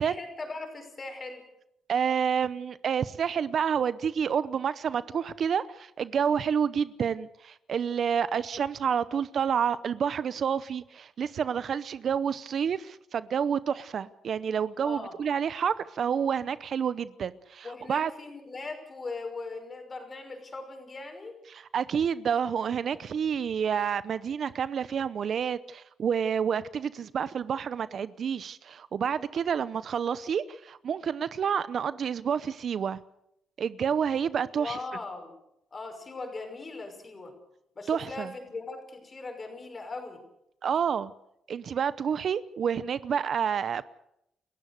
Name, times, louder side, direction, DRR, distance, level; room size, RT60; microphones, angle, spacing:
voice 1, 0.0-1.4 14.8-15.2 17.6-21.4 34.5-35.3 35.7-37.4 37.8-40.2, left 3 dB, 30° left, 5.8 m, -39 dB
voice 2, 1.9-18.1 21.5-33.0 33.6-34.8 37.9-38.3 40.6-41.1 41.5-43.8, right 7 dB, 55° right, 0.8 m, -29 dB
29.0 x 15.0 x 6.5 m
cardioid pair, 90°, 0 cm